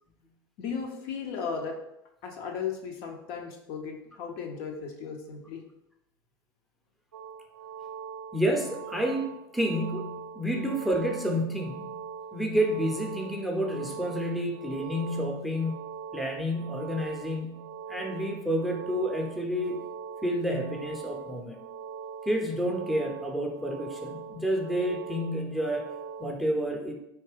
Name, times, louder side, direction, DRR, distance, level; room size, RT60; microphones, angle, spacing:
voice 1, 0.6-1.8 2.2-5.6, left 6 dB, 50° left, 2 dB, 0.5 m, -36 dB
sound 1, 7.1-26.3, right 7 dB, 80° right, 0.4 m, -42 dB
voice 2, 8.3-9.3 9.5-15.7 16.1-17.6 17.9-19.8 20.2-21.6 22.3-25.9 26.2-26.9, equal, ahead, 1 dB, 0.5 m, -29 dB
3.4 x 2.8 x 3.1 m, 0.85 s
figure-of-eight pair, 75°, 13 cm